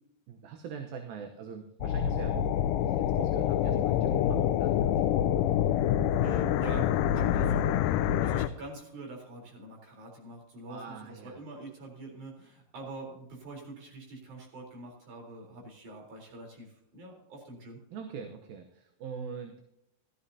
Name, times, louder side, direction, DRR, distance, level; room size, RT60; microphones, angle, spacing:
voice 1, 0.3-2.5 2.8-4.9 5.2-5.4 10.7-11.4 17.9-19.6, right 6 dB, 70° right, 4 dB, 2.7 m, -43 dB
sound 1, 1.8-8.5, left 10 dB, 90° left, 1.9 m, -26 dB
voice 2, 6.2-17.8, right 2 dB, 50° right, 0 dB, 5.1 m, -44 dB
17.5 x 13.5 x 2.8 m, 0.85 s
omnidirectional pair, 4.5 m